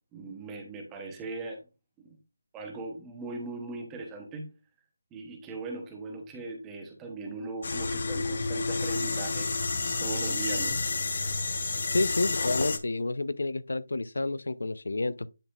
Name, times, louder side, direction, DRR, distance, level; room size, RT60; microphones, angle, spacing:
voice 1, 0.1-1.7 2.0-2.2 2.5-4.5 5.1-9.7 10.0-10.8, right 3 dB, 5° right, 0.9 m, -39 dB
sound 1, 7.6-12.8, left 3 dB, 40° left, 0.8 m, -30 dB
voice 2, 11.9-15.3, left 2 dB, 70° left, 0.5 m, -29 dB
10.0 x 4.0 x 2.4 m
figure-of-eight pair, 175°, 0 cm